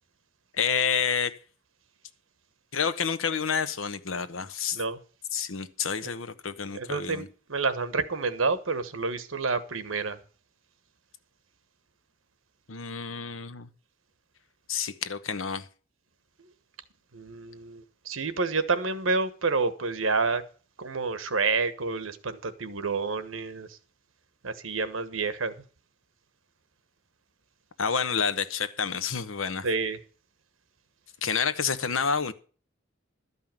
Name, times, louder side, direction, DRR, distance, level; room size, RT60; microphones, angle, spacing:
voice 1, 0.5-1.4 2.7-4.8 5.3-7.3 12.7-13.7 14.7-15.7 27.8-29.7 31.2-32.3, left 6 dB, 90° left, 1.0 m, -29 dB
voice 2, 6.7-10.2 16.4-16.5 17.1-20.4 20.8-23.8 24.4-25.6 29.6-30.0, right 4 dB, 90° right, 1.2 m, -29 dB
12.5 x 5.6 x 9.0 m
head